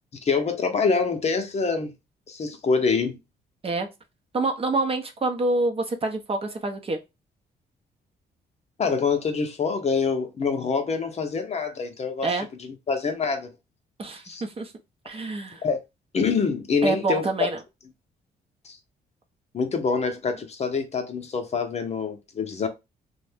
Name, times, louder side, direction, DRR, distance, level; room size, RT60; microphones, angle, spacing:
voice 1, 0.2-1.9 2.3-3.2 8.8-13.5 14.2-14.4 15.6-15.8 16.1-17.3 18.6-18.8 19.5-22.7, left 5 dB, 40° left, 0.6 m, -25 dB
voice 2, 4.3-7.0 12.2-12.5 14.0-14.7 15.1-15.6 16.8-17.6, right 2 dB, 35° right, 0.6 m, -26 dB
2.5 x 2.2 x 3.3 m
cardioid pair, 90°, 18 cm